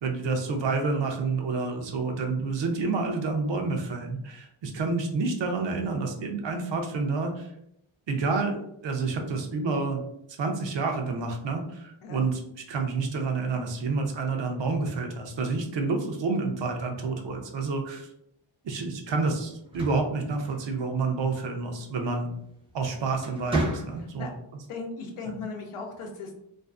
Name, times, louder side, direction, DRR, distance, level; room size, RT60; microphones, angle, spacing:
voice 1, 0.0-7.5 8.1-10.0 10.4-12.4 12.7-18.1 18.6-22.3 22.7-24.3, right 4 dB, 60° right, 4 dB, 0.6 m, -29 dB
sound 1, 19.5-21.1 22.5-22.8 23.2-24.3, right 2 dB, 10° right, 0.6 m, -32 dB
voice 2, 24.7-26.4, left 4 dB, 85° left, 2 dB, 0.7 m, -37 dB
2.5 x 2.4 x 2.3 m, 0.77 s
wide cardioid pair, 135°, 49 cm